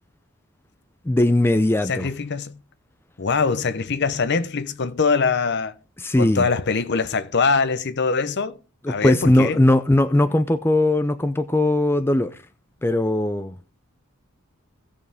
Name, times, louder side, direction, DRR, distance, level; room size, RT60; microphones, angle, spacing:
voice 1, 1.1-2.1 6.0-6.5 8.8-12.4 12.8-13.5, left 1 dB, 10° left, 0.4 m, -19 dB
voice 2, 1.9-2.6 3.2-5.7 6.2-8.6 8.9-9.6, left 4 dB, 50° left, 0.7 m, -23 dB
17.0 x 6.6 x 3.5 m
head